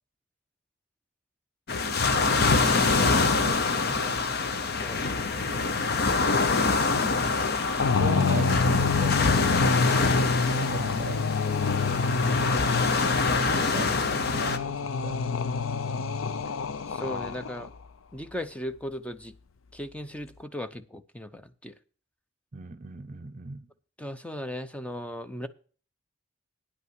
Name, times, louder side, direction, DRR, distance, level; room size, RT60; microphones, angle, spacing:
sound 1, 1.7-14.6, left 4 dB, 50° left, 0.8 m, -25 dB
voice 1, 1.8-4.3 8.0-11.3 13.5-15.2 22.5-23.7, right 3 dB, 40° right, 0.7 m, -38 dB
voice 2, 4.8-5.3 11.8-12.2 16.9-17.7 18.1-19.3 19.7-21.7 24.0-25.5, left 1 dB, 5° left, 0.6 m, -37 dB
sound 2, 7.8-17.7, left 4 dB, 80° left, 0.5 m, -27 dB
9.9 x 5.6 x 7.8 m
head